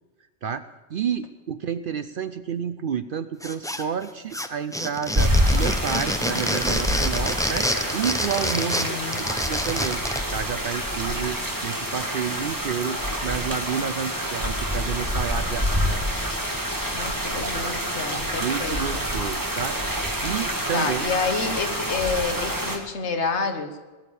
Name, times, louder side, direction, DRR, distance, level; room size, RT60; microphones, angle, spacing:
voice 1, 0.4-10.0 10.3-11.4 11.6-16.1 18.4-19.8 20.2-21.1, right 7 dB, 60° right, 12 dB, 0.6 m, -30 dB
sound 1, 3.4-4.1 4.3-10.3, equal, 5° left, 0.6 m, -27 dB
sound 2, 5.1-22.8, equal, 15° right, 1.7 m, -27 dB
voice 2, 8.5-9.3 16.9-19.0 20.7-23.7, left 4 dB, 70° left, 6 dB, 1.5 m, -29 dB
19.0 x 7.2 x 8.4 m, 1.3 s
omnidirectional pair, 1.2 m